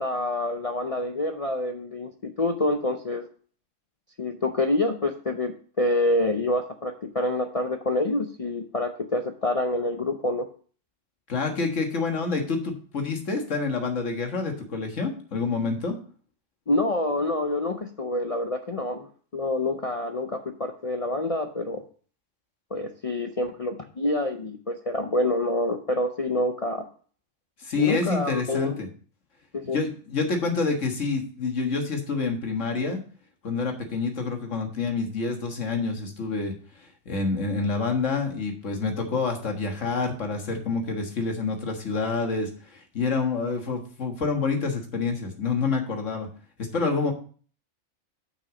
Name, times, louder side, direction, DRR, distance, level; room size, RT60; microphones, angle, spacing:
voice 1, 0.0-3.2 4.2-10.5 16.7-21.8 22.7-26.9 27.7-28.8 29.5-29.8, left 2 dB, 45° left, 4 dB, 0.4 m, -27 dB
voice 2, 11.3-16.0 27.6-28.9 29.7-33.0 33.4-36.5 37.1-46.3 46.6-47.1, left 4 dB, 60° left, 3 dB, 1.8 m, -27 dB
6.9 x 6.2 x 4.9 m, 0.42 s
omnidirectional pair, 1.4 m